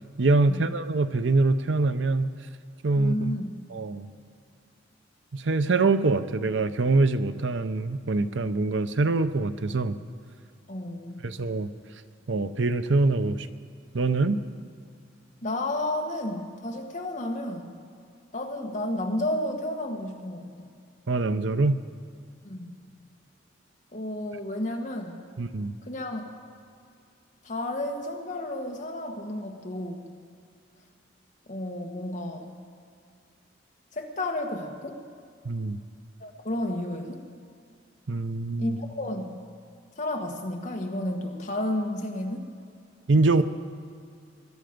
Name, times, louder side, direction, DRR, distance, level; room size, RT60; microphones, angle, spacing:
voice 1, 0.2-2.3 2.8-3.3 3.7-4.1 5.3-10.0 11.2-11.7 12.3-13.5 13.9-14.4 21.1-21.8 25.4-25.7 35.4-35.8 38.1-38.8 43.1-43.4, right 3 dB, 75° right, 11 dB, 0.7 m, -24 dB
voice 2, 3.0-3.5 10.7-11.3 15.4-17.7 18.3-20.7 22.4-22.8 23.9-25.2 25.9-26.2 27.4-30.1 31.5-32.5 33.9-35.0 36.2-37.2 38.6-39.3 40.0-42.4 43.4-43.5, left 1 dB, 40° left, 2 dB, 1.5 m, -32 dB
21.5 x 11.0 x 5.2 m, 2.3 s
head